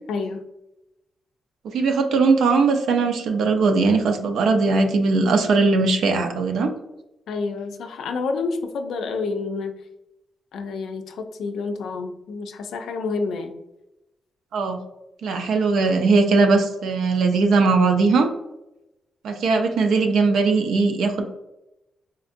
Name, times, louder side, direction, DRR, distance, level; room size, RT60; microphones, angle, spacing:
voice 1, 0.1-0.4 7.3-9.8 10.5-13.6, left 4 dB, 85° left, 6 dB, 0.4 m, -29 dB
voice 2, 1.6-6.7 14.5-14.8 15.2-18.3 19.2-21.2, right 4 dB, 90° right, 5 dB, 0.5 m, -19 dB
4.0 x 2.5 x 2.5 m, 0.91 s
cardioid pair, 105°, 0 cm